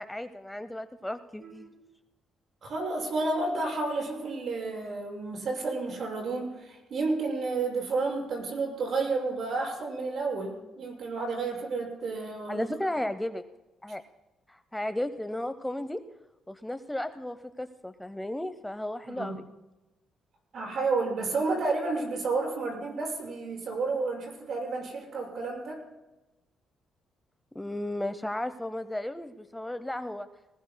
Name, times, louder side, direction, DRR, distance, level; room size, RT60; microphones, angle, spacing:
voice 1, 0.0-1.7 12.5-13.4 13.8-14.0 14.5-16.0 16.5-19.4 27.5-30.3, left 1 dB, 10° left, 11 dB, 0.7 m, -34 dB
voice 2, 1.4-1.7 2.6-12.7 19.1-19.3 20.5-25.8, right 3 dB, 60° right, 1 dB, 6.4 m, -31 dB
20.0 x 19.5 x 2.2 m, 1.0 s
cardioid pair, 90°, 0 cm